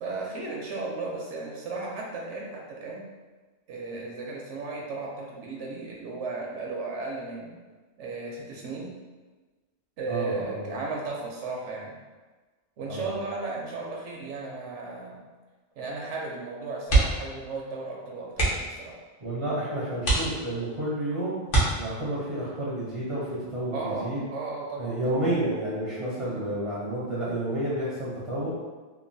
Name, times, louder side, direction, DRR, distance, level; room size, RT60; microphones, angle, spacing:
voice 1, 0.0-3.1 3.7-7.6 8.0-8.9 10.0-12.0 12.8-15.2 15.8-19.0 23.7-25.3 26.2-26.4, right 3 dB, 75° right, -2 dB, 0.9 m, -35 dB
voice 2, 10.1-10.7 12.9-13.2 19.2-21.4 21.8-24.2 24.8-28.5, right 1 dB, 40° right, -8 dB, 0.5 m, -30 dB
sound 1, 16.8-17.4 17.7-17.8 18.3-18.8 19.4-19.5 20.0-20.8 21.5-22.2 23.8-24.1 24.5-24.6, right 2 dB, 50° left, 0.9 m, -24 dB
3.0 x 2.2 x 2.6 m, 1.3 s
omnidirectional pair, 1.2 m